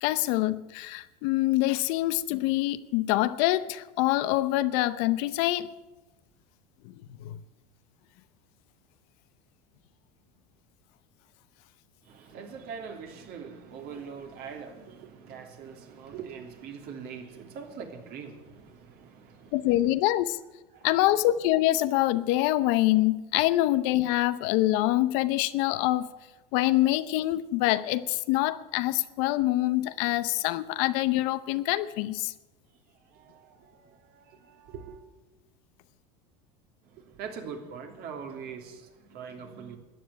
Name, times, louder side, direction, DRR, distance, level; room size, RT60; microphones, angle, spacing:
voice 1, 0.0-5.7 7.2-7.4 19.5-20.4 20.8-26.1 26.5-32.3, left 16 dB, 70° left, 0.8 m, -25 dB
voice 2, 12.0-19.9 20.7-21.2 32.9-35.0 36.8-39.8, right 6 dB, 55° right, 2.9 m, -43 dB
13.5 x 9.4 x 10.0 m
supercardioid pair, 105°, 19 cm